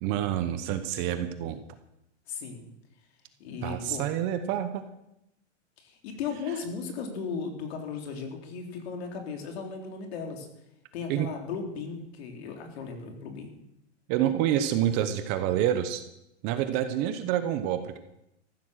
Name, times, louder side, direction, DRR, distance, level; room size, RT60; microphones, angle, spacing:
voice 1, 0.0-1.6 3.6-4.8 11.1-11.3 14.1-16.0 16.4-18.0, right 11 dB, 30° right, 10 dB, 0.8 m, -27 dB
voice 2, 2.3-2.6 3.4-4.0 5.8-10.5 10.9-13.5, left 5 dB, 55° left, 3 dB, 3.7 m, -36 dB
14.5 x 12.0 x 6.4 m, 0.84 s
supercardioid pair, 165°, 37 cm